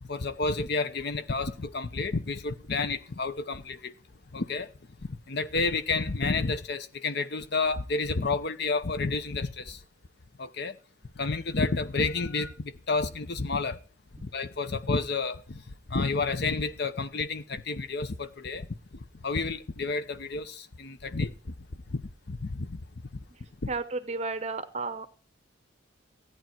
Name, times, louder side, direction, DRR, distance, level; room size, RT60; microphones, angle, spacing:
voice 1, 0.1-3.9 4.3-4.7 5.1-9.8 10.4-10.8 11.2-13.8 14.2-15.6 15.9-18.7 19.2-21.5 21.9-22.0 22.3-22.8 23.6-23.7, left 3 dB, 50° left, 0.8 m, -30 dB
voice 2, 23.3-25.1, right 3 dB, 30° right, 0.7 m, -34 dB
14.5 x 9.4 x 4.5 m
head